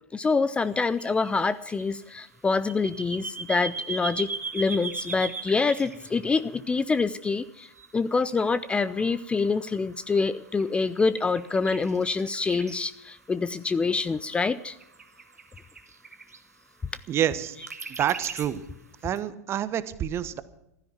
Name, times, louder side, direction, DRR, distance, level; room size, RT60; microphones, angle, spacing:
voice 1, 0.1-14.8, left 4 dB, 15° left, 16 dB, 0.5 m, -26 dB
sound 1, 1.0-6.9 7.7-7.9 8.2-12.9 13.9-16.4 17.4-18.7 19.2-19.3, right 4 dB, 85° right, 1.6 m, -39 dB
voice 2, 17.1-17.6 18.0-18.6 19.0-20.4, right 10 dB, 30° right, 15 dB, 1.1 m, -27 dB
15.0 x 13.0 x 5.9 m, 0.82 s
figure-of-eight pair, 95°, 8 cm